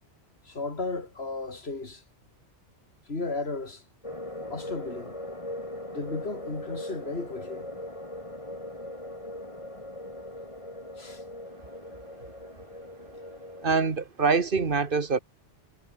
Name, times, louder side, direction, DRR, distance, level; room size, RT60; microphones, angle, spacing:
voice 1, 0.4-2.0 3.1-3.8 4.4-5.2 5.9-7.7 11.0-11.2, left 3 dB, 55° left, 3.6 m, -34 dB
sound 1, 4.0-13.7, left 1 dB, 25° left, 4.6 m, -40 dB
voice 2, 13.6-15.2, right 4 dB, 45° right, 1.8 m, -24 dB
omnidirectional pair, 1.2 m